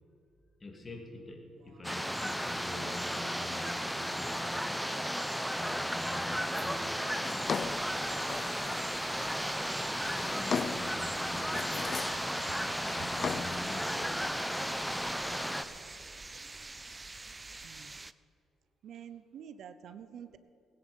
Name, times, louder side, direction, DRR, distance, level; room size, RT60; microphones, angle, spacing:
voice 1, 0.6-4.5 5.5-7.0 9.9-11.8 12.8-14.3, left 2 dB, 25° left, 2 dB, 2.7 m, -45 dB
sound 1, 1.8-15.6, equal, ahead, 0.7 m, -34 dB
Drawer open or close, 7.0-8.9 9.7-11.0 11.3-12.3 12.6-13.7, left 6 dB, 50° left, 0.6 m, -38 dB
sound 2, 7.4-18.1, right 3 dB, 20° right, 0.4 m, -46 dB
voice 2, 17.6-17.9 18.8-20.4, right 8 dB, 70° right, 12 dB, 0.7 m, -48 dB
20.5 x 9.7 x 5.4 m, 2.8 s
cardioid pair, 90°, 0 cm